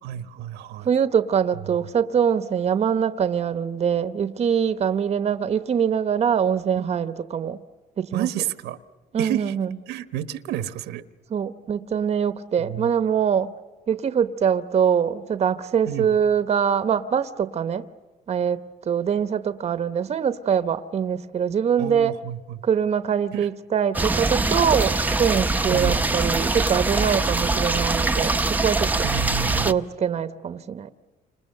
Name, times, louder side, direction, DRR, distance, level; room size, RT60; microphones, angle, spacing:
voice 1, 0.0-0.9 8.1-8.8 9.2-9.5 9.9-11.0 12.6-12.9 15.9-16.1 21.8-22.6 23.3-23.5 25.7-26.0 29.0-29.8, right 11 dB, 90° right, 11 dB, 1.2 m, -30 dB
voice 2, 0.8-7.6 8.0-8.3 9.1-9.7 11.3-13.5 13.9-17.9 18.3-22.1 22.6-29.1 29.6-30.9, right 7 dB, 40° right, 11 dB, 0.9 m, -23 dB
sound 1, 23.9-29.7, right 3 dB, 10° right, 0.8 m, -23 dB
29.5 x 27.0 x 6.7 m, 1.4 s
cardioid pair, 110°, 17 cm